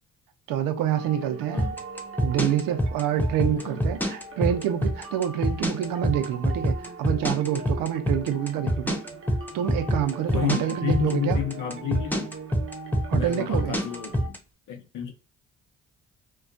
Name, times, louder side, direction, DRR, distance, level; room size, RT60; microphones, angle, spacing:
voice 1, 0.5-1.6 2.2-9.0 9.5-11.4 13.1-13.8, right 10 dB, 80° right, 0.5 m, -27 dB
sound 1, 1.0-14.3, right 4 dB, 40° right, 0.6 m, -40 dB
sound 2, 1.6-14.4, equal, 5° left, 0.6 m, -25 dB
voice 2, 10.3-12.3 13.1-14.4 14.7-15.1, left 10 dB, 65° left, 0.7 m, -31 dB
2.3 x 2.2 x 2.5 m
supercardioid pair, 60°, 33 cm